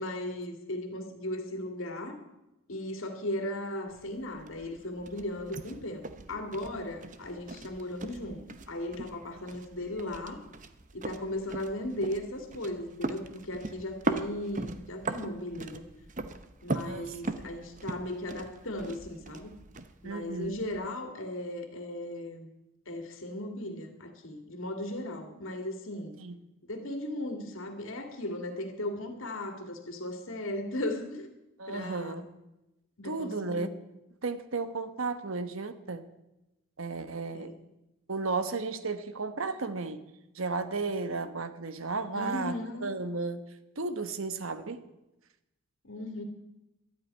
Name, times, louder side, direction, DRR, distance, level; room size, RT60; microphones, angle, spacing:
voice 1, 0.0-2.2 2.7-8.4 8.7-10.4 10.9-15.8 16.6-19.6 20.0-22.5 22.9-26.2 26.7-31.3 31.7-32.2 33.0-33.7 37.3-37.5 42.1-42.9 45.8-46.2, left 1 dB, 65° left, 5 dB, 2.2 m, -37 dB
sound 1, 3.9-20.9, right 2 dB, 35° right, 0.8 m, -40 dB
voice 2, 16.7-17.2 20.0-20.5 26.2-26.4 31.6-32.2 33.0-33.7 34.2-36.0 36.8-37.5 38.1-40.0 40.3-42.5 42.8-43.4 43.8-44.8, right 3 dB, 70° right, 11 dB, 1.1 m, -34 dB
12.5 x 8.7 x 9.6 m, 0.95 s
head